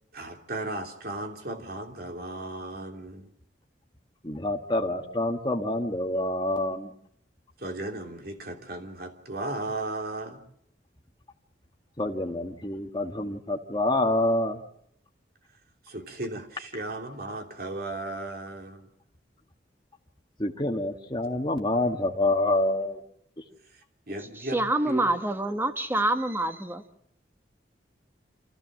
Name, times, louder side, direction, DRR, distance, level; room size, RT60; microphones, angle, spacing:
voice 1, 0.1-3.3 7.6-10.4 15.8-18.9 23.7-24.6 24.8-25.1, right 2 dB, 55° right, 3 dB, 3.2 m, -36 dB
voice 2, 4.2-6.9 12.0-14.6 20.4-23.0, left 1 dB, 25° left, 2 dB, 1.6 m, -27 dB
voice 3, 24.2-26.8, right 2 dB, 15° right, 7 dB, 1.4 m, -27 dB
27.5 x 15.0 x 7.7 m, 0.74 s
head